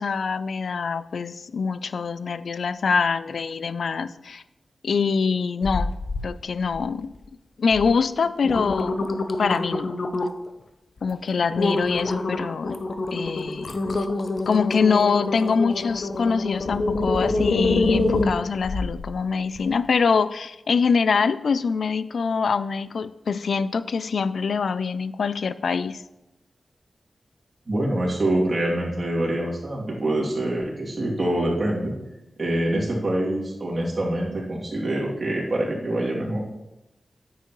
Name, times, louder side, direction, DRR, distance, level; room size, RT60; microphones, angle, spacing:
voice 1, 0.0-4.4 4.8-5.9 6.2-7.1 7.6-9.9 11.0-12.8 13.1-13.7 14.5-26.0, left 5 dB, 80° left, 15 dB, 0.3 m, -24 dB
sound 1, 5.6-6.3 6.6-7.2 7.7-7.9 8.2-10.5 11.0-11.1 11.6-19.1 19.6-19.7, left 2 dB, 60° left, 0.7 m, -26 dB
voice 2, 27.7-31.9 32.4-36.4, right 1 dB, 50° right, -4 dB, 2.7 m, -25 dB
9.6 x 8.3 x 3.1 m, 0.97 s
wide cardioid pair, 70°, 0 cm